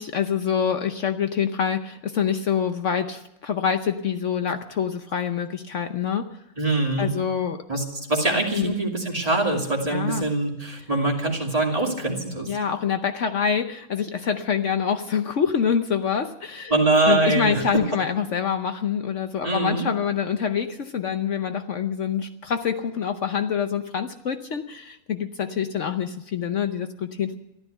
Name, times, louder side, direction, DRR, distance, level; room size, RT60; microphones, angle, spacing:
voice 1, 0.0-6.3 7.0-7.6 8.5-8.7 9.9-10.2 12.5-16.7 17.1-27.3, left 7 dB, 60° left, 8 dB, 1.1 m, -26 dB
voice 2, 6.6-7.1 7.7-12.5 16.7-17.6 19.4-19.8, right 2 dB, 25° right, 0 dB, 2.7 m, -23 dB
14.5 x 12.5 x 8.0 m, 0.86 s
omnidirectional pair, 1.5 m